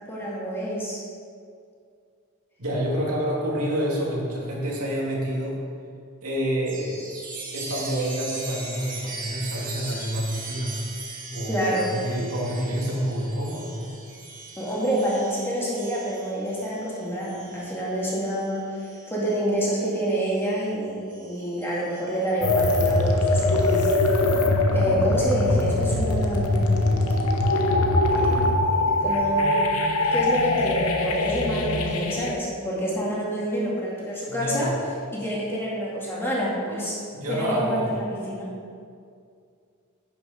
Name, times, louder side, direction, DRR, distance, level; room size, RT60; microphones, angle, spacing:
voice 1, 0.1-1.0 11.5-12.0 14.6-23.9 24.7-26.8 28.2-28.3 29.0-29.6 30.1-34.7 35.1-37.0 37.3-38.5, equal, 10° left, -6 dB, 2.1 m, -27 dB
voice 2, 2.6-5.6 6.2-7.0 7.5-10.7 11.3-13.9 34.3-34.7 37.1-37.9, equal, 80° right, -4 dB, 2.2 m, -28 dB
Chime, 6.7-20.6 21.1-23.9, right 3 dB, 40° right, 1.7 m, -40 dB
sound 1, 22.4-32.3, left 2 dB, 70° left, 0.9 m, -22 dB
10.0 x 6.3 x 5.0 m, 2.3 s
head